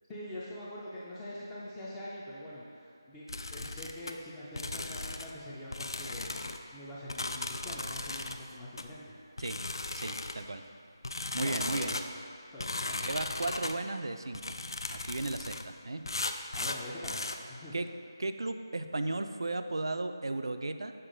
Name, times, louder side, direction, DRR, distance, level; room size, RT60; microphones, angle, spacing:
voice 1, 0.1-3.3 3.5-6.3 6.7-9.4 11.4-12.1 12.5-13.2 16.6-17.8, left 1 dB, 5° left, -8 dB, 0.3 m, -44 dB
sound 1, 3.3-4.1 4.6-5.4 5.7-6.6 7.1-8.4 8.8-8.9 9.4-10.4 11.0-12.1 12.6-13.8 14.3-15.7 16.1-17.4, left 2 dB, 85° left, 0.4 m, -37 dB
voice 2, 10.0-10.6 11.3-12.0 13.0-14.5 14.9-16.0 17.7-17.9 18.2-20.9, right 2 dB, 85° right, 8 dB, 0.4 m, -35 dB
6.6 x 4.5 x 3.7 m, 2.4 s
figure-of-eight pair, 175°, 2 cm